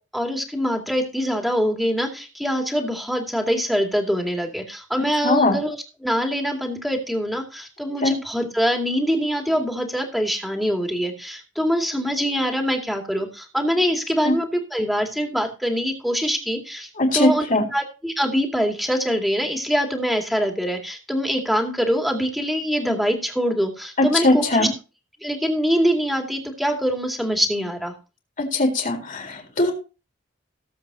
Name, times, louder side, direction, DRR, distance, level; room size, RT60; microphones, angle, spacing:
voice 1, 0.1-17.4 17.7-24.7 25.2-27.9, equal, ahead, 2 dB, 2.4 m, -24 dB
voice 2, 5.2-5.6 8.0-8.1 14.2-14.4 17.0-17.6 24.0-24.7 28.4-29.7, left 2 dB, 45° left, 2 dB, 3.8 m, -20 dB
18.5 x 7.9 x 2.8 m, 0.32 s
head